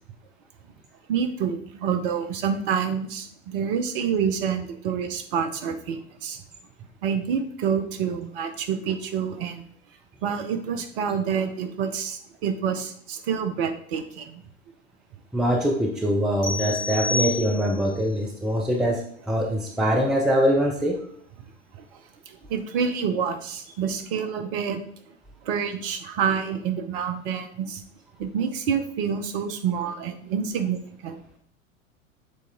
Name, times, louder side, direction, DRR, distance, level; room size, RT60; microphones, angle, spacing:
voice 1, 1.1-6.4 7.0-9.6 10.2-14.4 18.5-18.7 21.7-22.0 22.3-24.8 25.1-25.2 25.4-27.8 28.2-31.2, right 7 dB, 45° right, 8 dB, 0.9 m, -28 dB
voice 2, 15.3-21.0, equal, ahead, 1 dB, 0.4 m, -23 dB
sound 1, 16.4-18.0, left 2 dB, 65° left, 2.0 m, -29 dB
6.6 x 4.1 x 3.8 m, 0.62 s
figure-of-eight pair, 90°, 39 cm